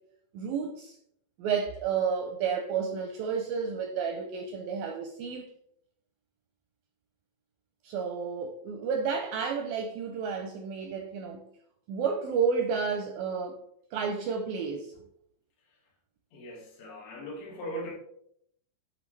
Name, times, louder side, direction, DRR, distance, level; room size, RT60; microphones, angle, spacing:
voice 1, 0.3-1.0 1.4-5.5 7.8-11.4 11.9-13.6 13.9-14.9, right 6 dB, 80° right, 2.1 m, -31 dB
voice 2, 16.3-17.9, equal, 80° left, 4.1 m, -39 dB
10.5 x 4.0 x 3.2 m
omnidirectional pair, 4.7 m